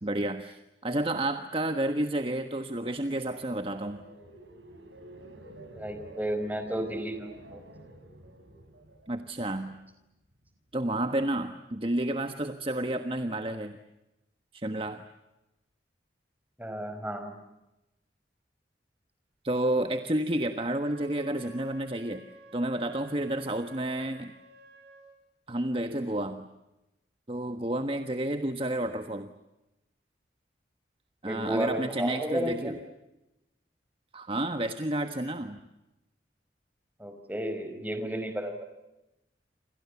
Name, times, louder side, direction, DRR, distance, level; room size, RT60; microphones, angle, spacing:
voice 1, 0.0-4.0 9.1-9.8 10.7-13.8 14.5-15.0 19.4-22.2 22.5-24.3 25.5-26.5 27.3-29.3 31.2-32.7 34.1-35.6, right 1 dB, 30° right, 7 dB, 1.3 m, -30 dB
sound 1, 2.8-9.9 10.3-10.7, right 1 dB, 85° right, 7.2 m, -50 dB
voice 2, 5.7-7.6 16.6-17.3 31.2-32.7 37.0-38.6, right 1 dB, 10° right, 7 dB, 4.9 m, -33 dB
Wind instrument woodwind instrument, 20.6-25.0, right 3 dB, 65° right, 7.6 m, -51 dB
29.0 x 27.5 x 7.1 m, 0.95 s
head